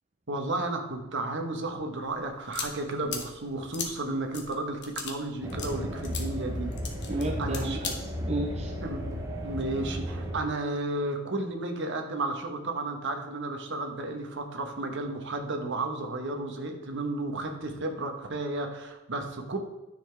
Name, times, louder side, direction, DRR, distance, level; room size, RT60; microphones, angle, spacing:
voice 1, 0.3-6.7 7.4-7.9 8.8-9.2 9.4-19.6, right 2 dB, 55° right, 4 dB, 1.1 m, -33 dB
sound 1, 2.0-7.9, left 6 dB, 50° left, 1.2 m, -39 dB
sound 2, 5.4-10.4, equal, 15° right, 1.0 m, -34 dB
voice 2, 7.1-8.7, right 2 dB, 30° right, 2 dB, 0.6 m, -33 dB
9.9 x 6.8 x 3.4 m, 1.0 s
head